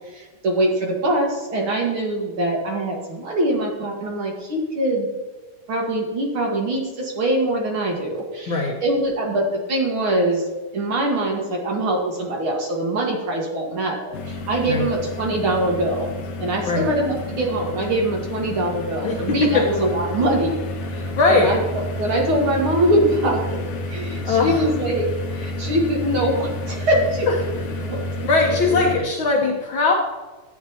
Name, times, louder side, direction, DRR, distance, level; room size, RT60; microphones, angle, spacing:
voice 1, 0.1-5.1 5.7-10.4 10.7-16.1 16.4-20.6 20.9-21.6 22.0-25.1 25.3-27.3 27.8-28.0 28.7-28.8, right 1 dB, 50° right, -1 dB, 1.9 m, -23 dB
voice 2, 8.5-8.8 14.7-14.9 16.7-16.9 19.0-19.6 20.9-21.5 24.2-24.7 27.3-27.4 28.3-29.9, left 4 dB, 85° left, 0 dB, 1.1 m, -20 dB
sound 1, 14.1-29.0, left 1 dB, 65° left, 2.2 m, -30 dB
12.5 x 8.6 x 2.8 m, 1.3 s
omnidirectional pair, 3.7 m